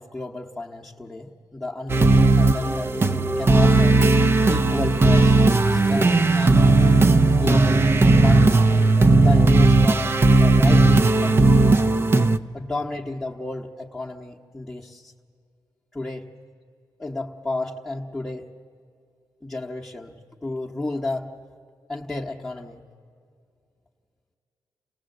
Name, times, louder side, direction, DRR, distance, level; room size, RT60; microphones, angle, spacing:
voice 1, 0.0-4.0 4.5-5.3 5.7-6.7 7.3-7.9 8.2-8.7 9.2-11.8 12.5-15.1 15.9-16.3 17.0-18.5 19.4-21.3 21.9-22.8, left 2 dB, 10° left, -3 dB, 1.0 m, -32 dB
sound 1, 1.9-12.4, right 2 dB, 30° right, 0.6 m, -16 dB
28.5 x 18.0 x 7.7 m, 2.4 s
wide cardioid pair, 135°, 8 cm